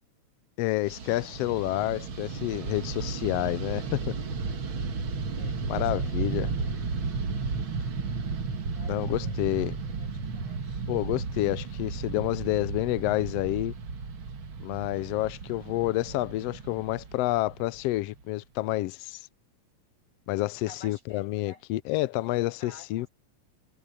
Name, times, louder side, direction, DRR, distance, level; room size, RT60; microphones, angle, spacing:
voice 1, 0.6-4.1 5.7-6.5 8.9-9.7 10.9-13.7 14.6-19.3 20.3-23.1, left 18 dB, 85° left, 1.4 m, -29 dB
Fixed-wing aircraft airplane, 0.8-18.3, right 4 dB, 45° right, 2.2 m, -34 dB
voice 2, 5.4-6.8 8.8-10.9 20.6-21.6 22.1-23.1, left 4 dB, 60° left, 8.9 m, -52 dB
omnidirectional pair, 3.3 m